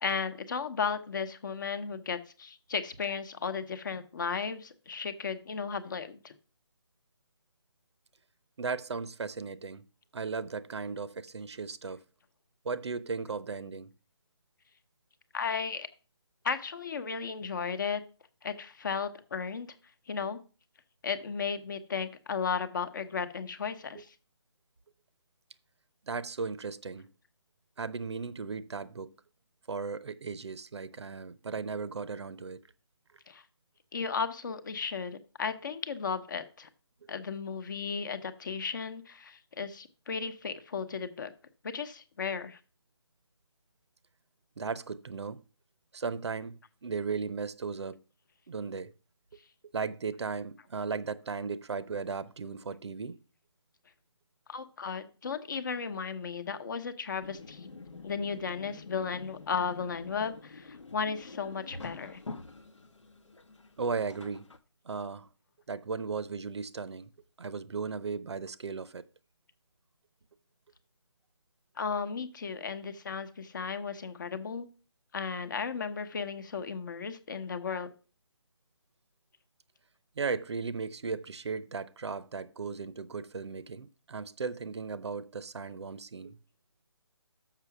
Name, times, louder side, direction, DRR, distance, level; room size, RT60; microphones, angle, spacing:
voice 1, 0.0-6.3 15.3-15.9 16.4-18.0 18.4-19.7 20.1-20.4 21.0-24.1 33.3-33.4 33.9-36.7 37.1-41.3 41.6-42.6 54.5-57.7 58.0-62.2 71.8-74.7 75.1-77.9, left 6 dB, 40° left, 0.9 m, -35 dB
voice 2, 8.6-9.8 10.1-12.0 12.6-13.9 23.9-24.0 26.1-27.1 27.8-29.1 29.7-32.6 44.6-45.4 45.9-48.0 48.5-48.9 49.7-53.2 63.8-64.5 64.9-65.3 65.7-67.1 67.4-69.1 80.2-86.4, right 5 dB, 70° right, 0.7 m, -36 dB
sound 1, 57.2-64.6, left 3 dB, 90° left, 1.1 m, -47 dB
6.8 x 5.9 x 5.9 m
hypercardioid pair, 165°, 15 cm